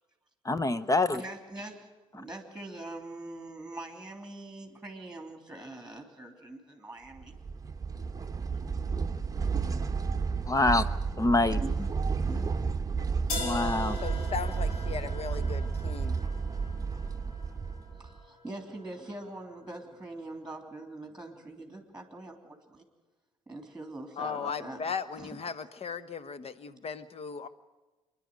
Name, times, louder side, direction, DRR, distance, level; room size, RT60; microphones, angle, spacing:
voice 1, 0.4-1.2 10.5-10.9 11.2-11.9 13.4-14.0, left 2 dB, 20° left, 15 dB, 0.8 m, -26 dB
voice 2, 1.1-7.3 8.6-8.7 11.5-11.7 12.3-12.7 18.0-22.8 23.5-24.8 25.2-25.4, right 2 dB, 5° right, 4 dB, 3.3 m, -43 dB
sound 1, 7.2-18.2, right 5 dB, 20° right, 1.1 m, -32 dB
sound 2, 13.3-19.2, left 2 dB, 75° left, 3.1 m, -41 dB
voice 3, 14.0-16.2 24.2-27.5, left 6 dB, 35° left, 14 dB, 1.2 m, -37 dB
26.5 x 11.0 x 9.3 m, 1.2 s
hypercardioid pair, 55°, 17 cm